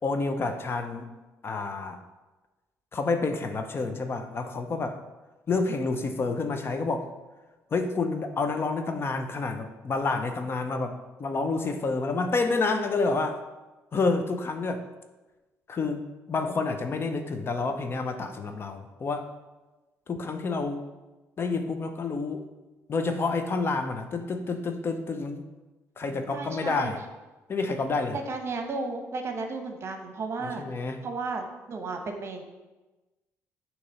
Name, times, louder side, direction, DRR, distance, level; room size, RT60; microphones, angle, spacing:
voice 1, 0.0-1.1 1.4-2.0 2.9-5.0 5.5-7.0 7.7-10.9 11.2-13.4 13.9-14.8 15.7-19.3 20.1-20.8 21.4-22.4 22.9-25.4 26.0-27.0 27.5-28.2 30.4-31.0, left 3 dB, 40° left, 7 dB, 0.6 m, -29 dB
voice 2, 26.3-26.9 28.1-30.6 31.0-32.4, right 3 dB, 45° right, 5 dB, 0.9 m, -33 dB
6.6 x 3.0 x 5.5 m, 1.1 s
cardioid pair, 80°, 6 cm